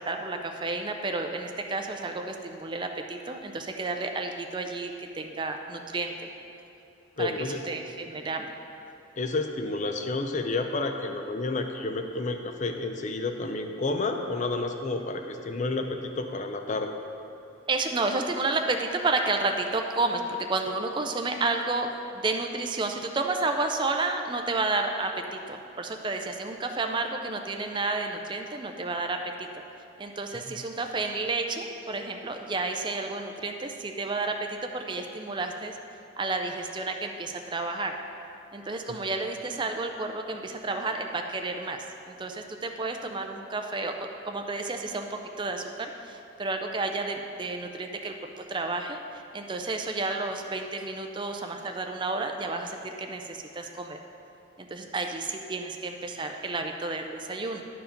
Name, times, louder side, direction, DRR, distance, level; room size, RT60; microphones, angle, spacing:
voice 1, 0.1-6.1 7.2-7.3 7.7-8.5 17.7-29.2 30.0-34.4 34.7-35.8 36.2-37.9 38.5-48.1 48.5-49.0 49.3-54.0 54.6-57.6, right 3 dB, 25° right, 4 dB, 0.4 m, -31 dB
voice 2, 7.2-7.6 9.2-16.9 30.5-30.6, left 3 dB, 35° left, 6 dB, 0.5 m, -30 dB
10.5 x 4.8 x 5.1 m, 2.8 s
head